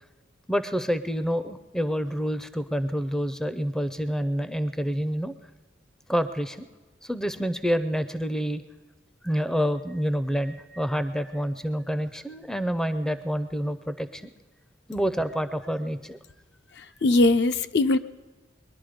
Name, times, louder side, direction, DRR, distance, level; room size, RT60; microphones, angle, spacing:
voice 1, 0.5-5.3 6.1-6.6 7.0-8.6 9.2-14.3 14.9-16.2, equal, 5° left, 12 dB, 0.5 m, -28 dB
voice 2, 16.8-18.0, left 2 dB, 60° left, 10 dB, 0.5 m, -21 dB
22.0 x 11.5 x 5.1 m, 1.3 s
head